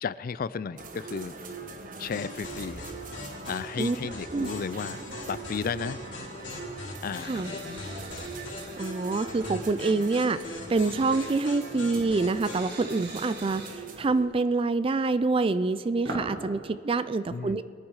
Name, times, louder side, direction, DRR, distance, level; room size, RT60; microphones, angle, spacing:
voice 1, 0.0-1.4 2.0-2.8 3.5-5.0 5.3-6.0 7.0-7.8 17.3-17.6, left 6 dB, 50° left, 17 dB, 0.4 m, -34 dB
sound 1, 0.8-14.3, right 3 dB, 45° right, 1.1 m, -42 dB
sound 2, 2.1-12.7, left 2 dB, 80° left, 3.3 m, -41 dB
sound 3, 7.1-8.8 10.7-11.4 12.4-13.7 15.4-16.4, right 1 dB, 60° right, 2.0 m, -41 dB
voice 2, 8.8-17.6, right 3 dB, 30° right, 14 dB, 0.4 m, -26 dB
22.0 x 9.0 x 4.8 m, 2.4 s
head